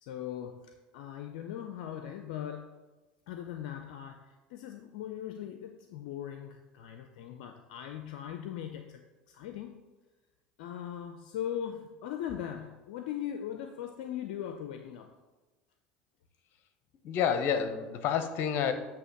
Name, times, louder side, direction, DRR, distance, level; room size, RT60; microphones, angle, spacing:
voice 1, 0.0-2.7 3.3-9.0 9.3-9.9 10.6-15.1, left 10 dB, 75° left, 6 dB, 0.5 m, -40 dB
voice 2, 17.0-18.7, left 8 dB, 55° left, 9 dB, 0.8 m, -29 dB
8.2 x 2.9 x 6.0 m, 1.2 s
hypercardioid pair, 80°, 4 cm